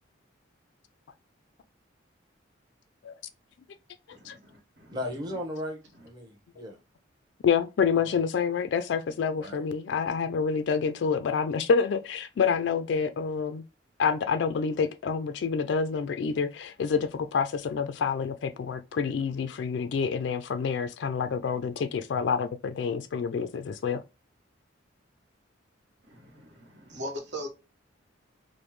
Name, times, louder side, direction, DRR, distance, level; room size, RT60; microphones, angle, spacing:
voice 1, 4.1-5.0 26.0-27.5, equal, 70° right, 1.1 m, -40 dB
voice 2, 4.9-5.8 6.0-6.8 7.9-8.2 9.4-9.6, left 1 dB, 20° right, 0.8 m, -36 dB
voice 3, 7.4-13.6 14.0-24.0, left 6 dB, 70° left, 0.3 m, -28 dB
5.0 x 2.1 x 3.0 m
head